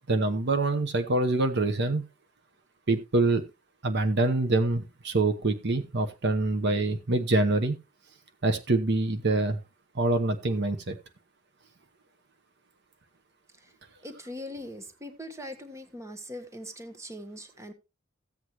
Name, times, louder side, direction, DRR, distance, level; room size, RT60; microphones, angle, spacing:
voice 1, 0.1-2.0 2.9-3.4 3.8-7.8 8.4-9.6 9.9-11.0, right 2 dB, 55° right, 8 dB, 1.0 m, -25 dB
voice 2, 14.0-17.7, equal, 15° right, 9 dB, 1.1 m, -41 dB
15.0 x 8.1 x 3.0 m, 0.26 s
head